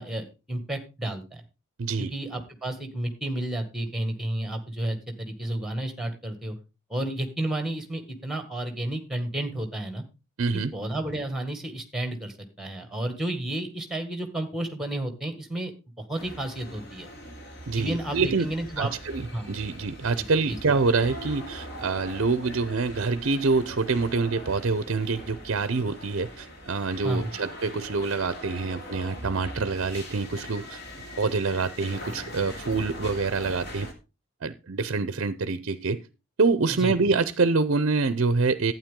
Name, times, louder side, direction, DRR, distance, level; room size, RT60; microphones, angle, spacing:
voice 1, 0.0-1.4 2.0-6.6 6.9-10.0 10.5-15.7 16.0-17.1 17.7-18.9 19.3-19.5 20.2-20.6 27.0-27.3 36.8-36.9, right 1 dB, ahead, 1.7 m, -31 dB
voice 2, 1.8-2.1 10.4-10.7 17.7-18.5 18.8-30.8 31.2-33.9 34.4-36.0 36.4-38.7, right 4 dB, 55° right, 0.6 m, -26 dB
sound 1, 16.2-33.9, equal, 50° left, 2.5 m, -41 dB
12.0 x 9.2 x 3.7 m
head